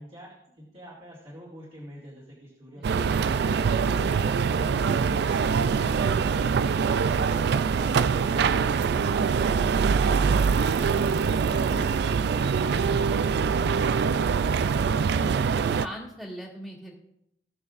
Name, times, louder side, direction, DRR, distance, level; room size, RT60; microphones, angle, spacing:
voice 1, 0.0-5.2, equal, 35° right, -7 dB, 2.4 m, -47 dB
sound 1, 2.8-15.9, right 6 dB, 60° right, 0.3 m, -24 dB
sound 2, 4.2-13.9 14.3-15.2, right 1 dB, 80° right, 4.5 m, -49 dB
voice 2, 14.6-15.0 15.5-16.9, equal, 5° right, -10 dB, 2.1 m, -41 dB
18.5 x 6.8 x 2.5 m, 0.80 s
head